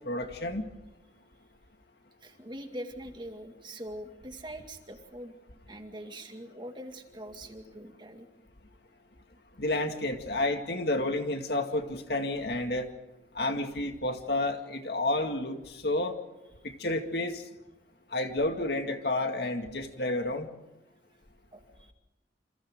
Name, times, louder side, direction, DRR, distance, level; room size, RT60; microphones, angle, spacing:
voice 1, 0.1-0.7 9.6-12.9 13.4-16.1 16.6-17.4 18.1-20.5, left 2 dB, 60° left, 5 dB, 2.1 m, -30 dB
voice 2, 2.2-5.3 5.7-8.3 16.6-16.7 21.5-21.9, right 1 dB, 25° right, 5 dB, 2.1 m, -43 dB
28.0 x 27.5 x 3.8 m, 0.98 s
head